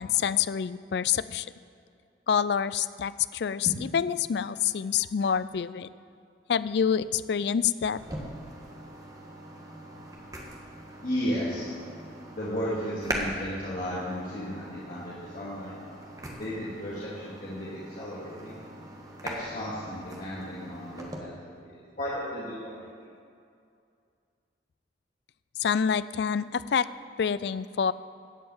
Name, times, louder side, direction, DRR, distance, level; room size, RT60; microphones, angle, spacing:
voice 1, 0.0-1.5 2.3-5.9 6.5-8.0 25.6-26.9 27.2-27.9, left 7 dB, 65° left, 15 dB, 0.4 m, -27 dB
sound 1, 7.9-21.2, right 1 dB, 20° right, 1.5 m, -41 dB
voice 2, 11.0-11.7 12.3-15.7 16.4-18.6 19.2-21.7 22.0-22.9, equal, 50° left, -9 dB, 2.3 m, -34 dB
14.5 x 5.6 x 8.7 m, 2.4 s
head